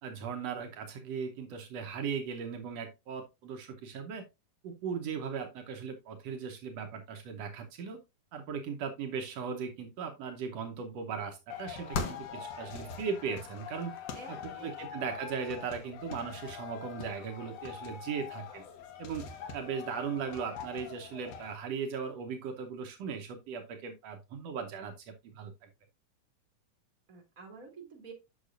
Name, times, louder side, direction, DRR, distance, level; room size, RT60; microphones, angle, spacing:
voice 1, 0.0-4.3 4.6-8.0 8.3-13.9 14.3-18.6 19.0-19.3 19.5-25.7, right 6 dB, 90° right, 4 dB, 1.4 m, -38 dB
sound 1, 11.5-21.5, left 6 dB, 65° left, 1.7 m, -42 dB
voice 2, 14.1-15.0 27.1-28.1, right 4 dB, 30° right, 2 dB, 2.0 m, -50 dB
8.6 x 6.5 x 2.5 m, 0.23 s
omnidirectional pair, 4.2 m